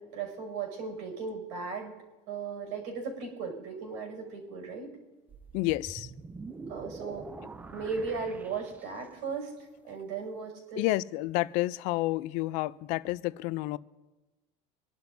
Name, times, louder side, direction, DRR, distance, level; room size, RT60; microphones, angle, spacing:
voice 1, 0.0-1.9 2.3-4.9 6.7-7.3 7.7-9.5 9.9-10.9, right 5 dB, 65° right, 3 dB, 6.1 m, -36 dB
sound 1, 5.3-9.3, right 3 dB, 10° right, 0.4 m, -45 dB
voice 2, 5.5-6.1 10.8-13.8, left 19 dB, 55° left, 18 dB, 0.4 m, -30 dB
26.0 x 11.5 x 2.7 m, 1.1 s
cardioid pair, 170°, 17 cm